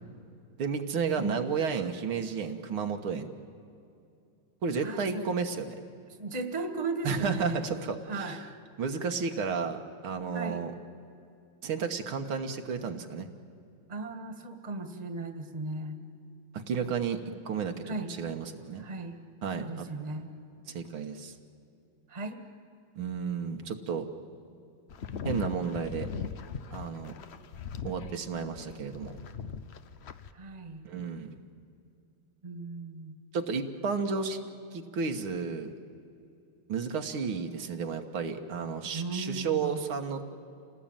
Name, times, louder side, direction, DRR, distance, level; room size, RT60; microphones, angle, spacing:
voice 1, 0.6-3.3 4.6-5.8 7.0-8.5 8.8-10.7 11.6-13.3 16.5-18.8 19.4-19.9 20.7-21.3 23.0-24.1 25.3-26.1 26.7-27.2 27.8-29.2 30.8-31.4 33.3-34.4 34.7-35.7 36.7-40.2, right 5 dB, 85° right, 5 dB, 2.3 m, -32 dB
voice 2, 4.8-5.2 6.1-7.6 8.1-8.4 10.3-10.6 13.9-16.0 17.8-18.1 18.8-19.2 19.6-20.3 22.1-22.4 30.3-30.9 32.4-33.2 38.9-39.8, right 3 dB, 20° right, 8 dB, 1.5 m, -36 dB
sound 1, 24.9-30.3, left 6 dB, 90° left, 0.5 m, -39 dB
28.0 x 18.5 x 9.0 m, 2.6 s
omnidirectional pair, 2.3 m